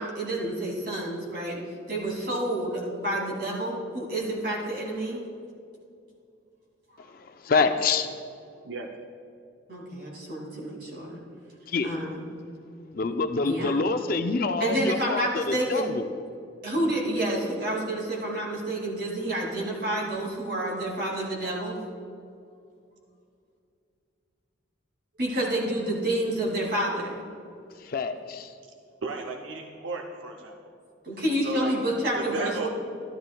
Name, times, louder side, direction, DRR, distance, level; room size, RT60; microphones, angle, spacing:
voice 1, 0.0-1.6 1.9-5.2 9.7-11.2 11.8-12.2 13.4-13.9 14.6-15.9 16.6-21.8 25.2-27.2 31.0-32.7, right 1 dB, 55° right, -4 dB, 2.5 m, -29 dB
voice 2, 7.0-8.1 11.7-11.9 12.9-16.1 27.8-28.5, left 4 dB, 45° left, 8 dB, 0.4 m, -27 dB
voice 3, 29.0-30.7 31.4-31.7 32.1-32.7, right 3 dB, 80° right, 2 dB, 0.6 m, -35 dB
12.5 x 12.0 x 2.3 m, 2.5 s
head